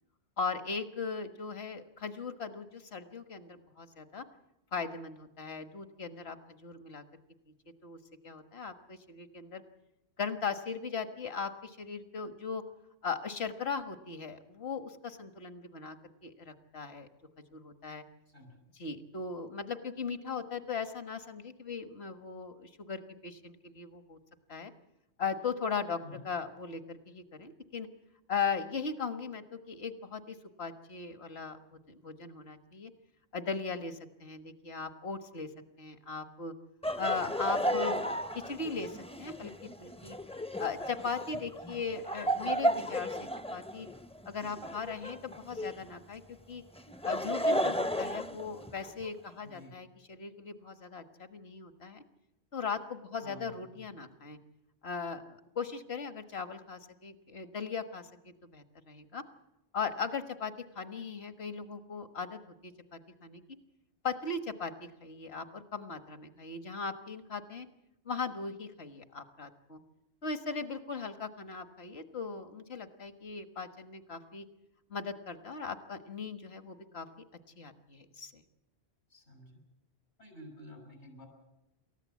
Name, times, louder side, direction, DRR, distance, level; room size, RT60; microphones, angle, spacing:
voice 1, 0.4-4.3 4.7-7.0 7.8-8.0 8.2-9.6 10.2-12.6 13.0-16.0 16.2-17.1 17.5-18.0 18.7-24.2 24.5-24.7 25.2-27.9 28.3-32.9 33.3-35.5 35.8-36.5 37.0-40.2 40.6-43.9 44.3-46.6 47.0-52.0 52.5-54.4 54.8-59.2 59.7-63.4 64.0-67.7 68.1-69.8 70.2-74.5 74.9-77.1 77.6-78.4, left 5 dB, 70° left, 8 dB, 1.7 m, -38 dB
voice 2, 18.3-18.6 26.0-26.2 49.4-49.7 53.2-53.9 79.1-79.6 80.2-81.3, left 1 dB, 85° left, 5 dB, 6.5 m, -51 dB
Laughter, 36.8-45.9 46.8-49.1, equal, 5° left, 0.5 m, -34 dB
28.0 x 14.5 x 8.3 m, 0.91 s
omnidirectional pair, 1.1 m